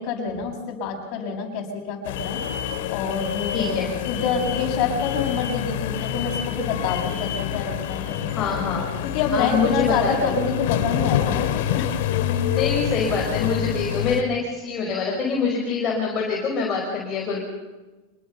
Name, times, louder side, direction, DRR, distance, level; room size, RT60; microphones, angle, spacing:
voice 1, 0.0-2.4 2.9-8.2 9.0-11.9, left 5 dB, 50° left, 2 dB, 6.7 m, -27 dB
sound 1, 2.1-14.2, left 10 dB, 70° left, 2.3 m, -27 dB
voice 2, 3.5-3.9 8.3-8.9 9.3-10.3 12.5-17.4, left 5 dB, 30° left, -2 dB, 5.6 m, -25 dB
27.0 x 21.0 x 5.7 m, 1.2 s
supercardioid pair, 130°, 0 cm